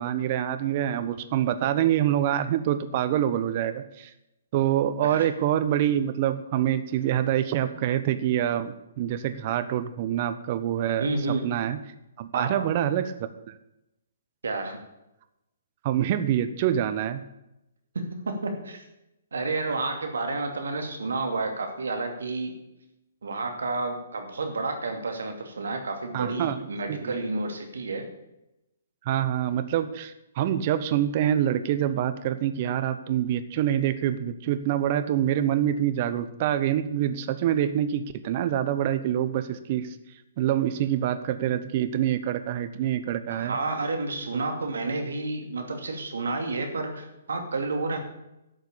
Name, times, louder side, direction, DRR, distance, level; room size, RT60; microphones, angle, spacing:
voice 1, 0.0-4.1 4.5-11.1 11.4-11.8 12.2-13.5 15.8-17.2 26.1-26.6 26.9-27.1 29.0-40.0 40.4-43.5, right 11 dB, 40° right, 11 dB, 1.1 m, -26 dB
voice 2, 11.0-11.5 12.3-12.8 14.4-14.8 17.9-18.8 19.3-22.5 23.2-28.1 43.3-48.0, right 3 dB, 75° right, 5 dB, 2.6 m, -30 dB
12.0 x 6.6 x 8.6 m, 0.90 s
hypercardioid pair, 135°, 0 cm